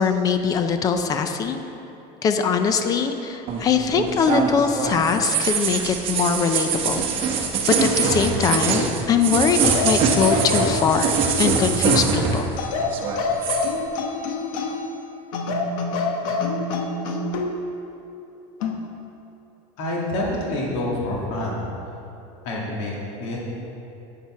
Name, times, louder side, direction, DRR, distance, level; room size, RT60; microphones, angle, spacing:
voice 1, 0.0-1.6 2.2-11.1 11.4-12.4, left 6 dB, 20° left, 7 dB, 0.4 m, -22 dB
sound 1, 3.5-12.6 12.8-13.7, right 5 dB, 35° right, 0.9 m, -23 dB
sound 2, 9.6-11.9 12.6-14.9 15.3-17.5 18.6-18.9, left 3 dB, 85° left, 1.1 m, -26 dB
voice 2, 19.8-21.6 22.4-23.4, left 1 dB, 60° left, -4 dB, 2.3 m, -27 dB
8.4 x 7.3 x 5.7 m, 2.9 s
cardioid pair, 175°, 17 cm